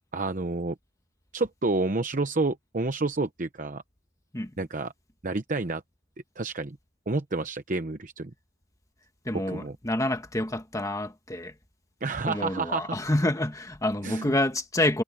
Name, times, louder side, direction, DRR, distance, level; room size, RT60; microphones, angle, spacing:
voice 1, 0.1-0.8 1.3-3.8 4.6-4.9 5.2-5.8 6.4-6.8 7.1-8.3 9.5-9.8 12.0-13.0 14.0-14.3, right 3 dB, 45° right, 0.9 m, -29 dB
voice 2, 9.2-11.5 12.3-15.0, left 1 dB, 15° left, 1.5 m, -28 dB
head